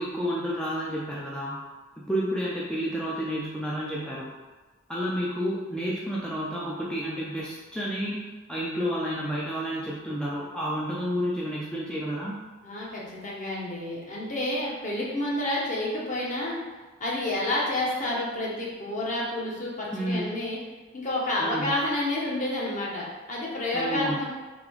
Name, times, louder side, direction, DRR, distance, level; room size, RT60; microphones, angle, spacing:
voice 1, 0.0-1.6 2.0-4.3 4.9-8.2 8.5-12.4 19.9-20.4 21.4-21.7 23.7-24.3, equal, 5° left, -6 dB, 0.5 m, -30 dB
voice 2, 12.6-16.6 17.0-20.6 20.9-24.3, left 1 dB, 40° left, -5 dB, 1.0 m, -29 dB
3.6 x 3.4 x 3.5 m, 1.3 s
head